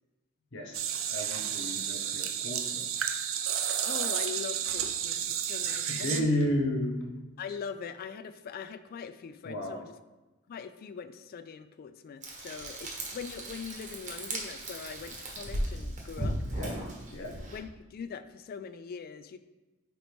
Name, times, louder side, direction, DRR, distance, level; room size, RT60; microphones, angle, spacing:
voice 1, 0.5-2.9 5.9-7.1 9.4-9.9 16.5-16.8 17.1-17.3, left 1 dB, 60° left, 1 dB, 0.9 m, -32 dB
sound 1, 0.7-6.2, right 9 dB, 65° right, 0.5 m, -32 dB
voice 2, 3.9-6.3 7.4-9.9 10.5-16.6 17.2-19.4, left 6 dB, 45° left, 11 dB, 0.3 m, -42 dB
Frying (food), 12.2-17.6, right 1 dB, 35° right, 1.0 m, -37 dB
9.1 x 3.1 x 3.4 m, 1.1 s
head